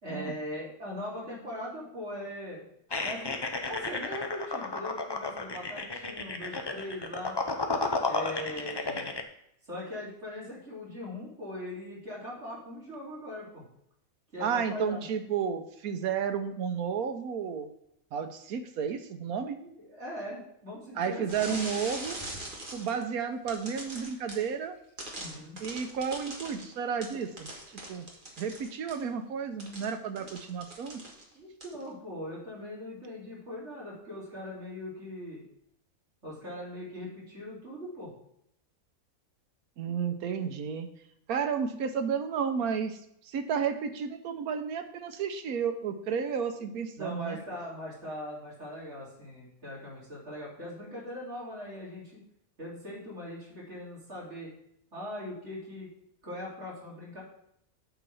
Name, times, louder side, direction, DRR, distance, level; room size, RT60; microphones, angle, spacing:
voice 1, 0.0-2.7 3.0-7.4 8.1-9.2 9.6-13.6 14.3-15.0 19.6-21.5 25.1-25.6 30.2-30.3 31.3-35.4 36.2-38.1 46.9-52.2 52.6-54.5 54.9-55.9 56.2-57.2, left 1 dB, 50° right, -7 dB, 3.8 m, -40 dB
sound 1, 2.9-9.2, left 3 dB, 35° left, 0.4 m, -33 dB
voice 2, 14.4-17.7 18.1-19.6 21.0-22.2 22.7-24.8 25.6-27.5 27.9-28.1 28.4-31.0 39.8-40.9 41.3-47.4, right 7 dB, 90° right, 8 dB, 1.3 m, -32 dB
sound 2, 21.3-23.0 23.5-24.5 25.0-29.1 29.6-31.3 31.6-31.8, right 1 dB, 35° right, 1.7 m, -41 dB
8.8 x 4.1 x 6.9 m, 0.75 s
omnidirectional pair, 1.5 m